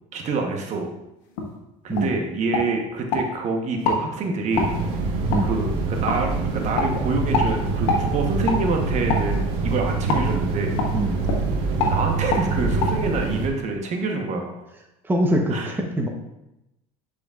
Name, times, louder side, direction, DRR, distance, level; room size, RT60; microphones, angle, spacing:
voice 1, 0.1-0.9 1.8-4.7 5.4-10.8 11.9-14.5 15.5-15.7, right 3 dB, 50° right, 2 dB, 1.1 m, -26 dB
sound 1, 1.4-1.5 1.9-2.1 2.5-3.2 3.8-4.0 4.6-4.7 5.3-5.4 6.1-6.2 6.7-6.9 7.3-7.5 7.9-8.0 8.4-8.6 9.1-9.3 10.1-10.2 10.8-10.9 11.2-11.4 11.8-12.0 12.3-12.4 12.8-12.9, left 4 dB, 85° left, 1.3 m, -24 dB
sound 2, 4.5-13.5, right 3 dB, 80° right, 1.4 m, -25 dB
voice 2, 15.0-16.1, right 1 dB, 15° right, 2 dB, 1.0 m, -23 dB
10.5 x 5.0 x 2.5 m, 0.90 s
supercardioid pair, 100°, 16 cm